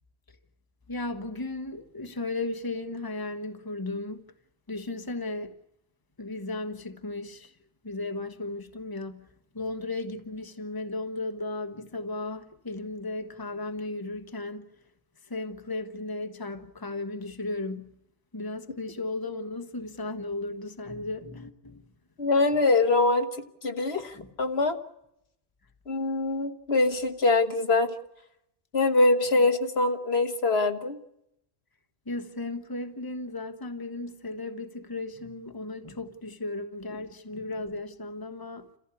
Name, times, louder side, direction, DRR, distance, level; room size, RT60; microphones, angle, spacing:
voice 1, 0.9-4.3 4.7-5.5 6.2-7.5 7.8-9.3 9.5-14.7 15.3-17.9 18.3-21.8 24.1-24.3 29.4-29.5 32.1-38.7, left 2 dB, 20° left, 1.3 m, -35 dB
voice 2, 22.2-23.3 23.6-24.8 25.9-27.9 28.7-31.0, left 3 dB, 70° left, 1.7 m, -23 dB
29.0 x 15.0 x 8.5 m
omnidirectional pair, 1.1 m